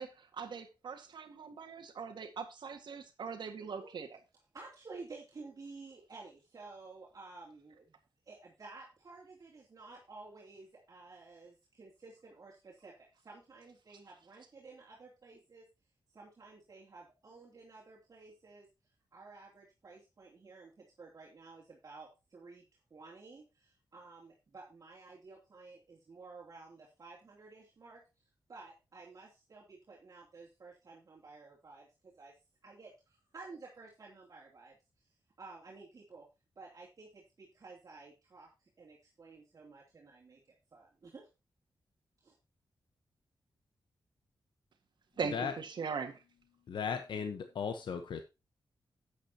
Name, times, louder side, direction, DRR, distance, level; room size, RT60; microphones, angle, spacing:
voice 1, 0.0-4.1 45.2-46.2, right 5 dB, 70° right, 6 dB, 1.8 m, -40 dB
voice 2, 4.5-7.9 8.3-15.7 16.1-18.7 19.1-22.6 22.9-28.0 28.5-32.4 32.6-34.8 35.4-36.3 36.6-41.3 42.2-42.3, right 3 dB, 45° right, -3 dB, 2.9 m, -53 dB
voice 3, 45.2-45.5 46.7-48.2, left 6 dB, 80° left, 8 dB, 1.0 m, -36 dB
11.5 x 8.7 x 2.9 m, 0.27 s
wide cardioid pair, 120°, 8 cm